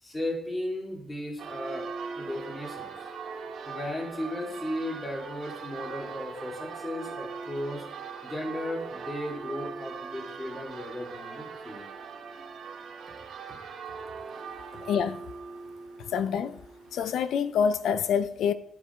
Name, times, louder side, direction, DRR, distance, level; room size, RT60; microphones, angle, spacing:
voice 1, 0.0-1.9 2.1-2.9 3.7-7.9 8.2-11.9, left 1 dB, 20° left, 2.8 m, -35 dB
Church bell, 1.4-17.1, right 5 dB, 70° right, 1.4 m, -40 dB
voice 2, 14.8-15.2 16.0-16.6 16.9-18.5, left 7 dB, 80° left, 0.6 m, -27 dB
12.0 x 5.1 x 4.6 m
cardioid pair, 105°, 0 cm